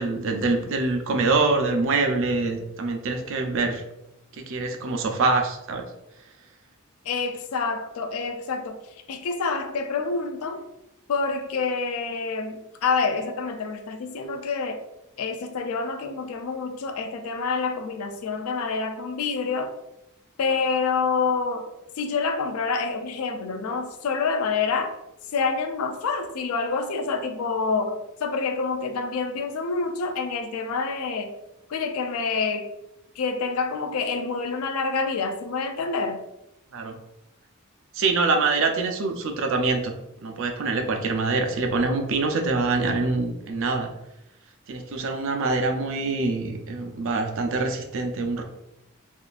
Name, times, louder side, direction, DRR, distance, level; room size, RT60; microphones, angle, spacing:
voice 1, 0.0-3.8 4.4-5.8 36.7-37.0 37.9-39.9 40.2-43.9 44.7-48.4, right 3 dB, 65° right, 0.5 m, -25 dB
voice 2, 7.1-8.8 9.1-10.6 11.1-14.8 15.2-19.7 20.4-24.9 25.3-31.3 31.7-32.7 33.2-36.2, left 4 dB, 80° left, 0.4 m, -27 dB
3.6 x 2.4 x 2.4 m
head